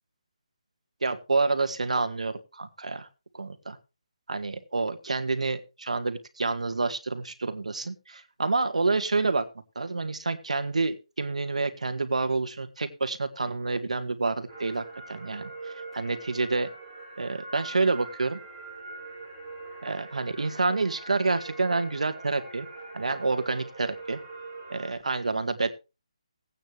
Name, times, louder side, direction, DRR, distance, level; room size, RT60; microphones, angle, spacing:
voice 1, 1.0-3.1 3.3-3.8 4.3-9.4 9.8-16.7 17.2-18.4 19.8-22.7 22.9-24.2 24.7-25.7, right 3 dB, 90° right, 9 dB, 1.9 m, -28 dB
sound 1, 14.5-24.9, right 3 dB, ahead, 3.9 m, -43 dB
17.0 x 9.0 x 3.2 m, 0.29 s
hypercardioid pair, 180°, 4 cm